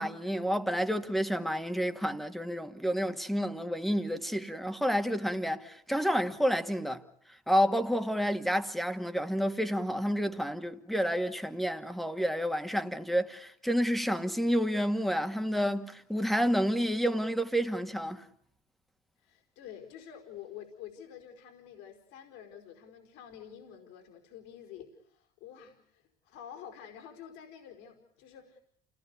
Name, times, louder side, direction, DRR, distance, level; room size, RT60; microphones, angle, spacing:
voice 1, 0.0-7.0 7.5-18.2, equal, ahead, 2.2 m, -29 dB
voice 2, 19.2-28.6, left 9 dB, 75° left, 5.0 m, -49 dB
29.0 x 19.0 x 8.4 m
hypercardioid pair, 75°, 19 cm